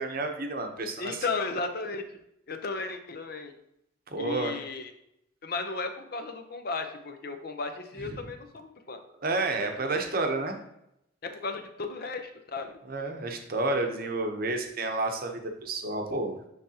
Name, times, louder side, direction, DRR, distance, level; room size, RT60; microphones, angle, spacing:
voice 1, 0.0-1.2 4.1-4.6 8.0-8.2 9.2-10.6 12.9-16.5, right 2 dB, 45° right, 4 dB, 0.8 m, -30 dB
voice 2, 1.0-2.2 2.5-3.5 4.2-4.9 5.4-9.0 11.2-12.7, left 3 dB, 50° left, 7 dB, 0.6 m, -35 dB
9.9 x 3.4 x 2.8 m, 0.80 s
head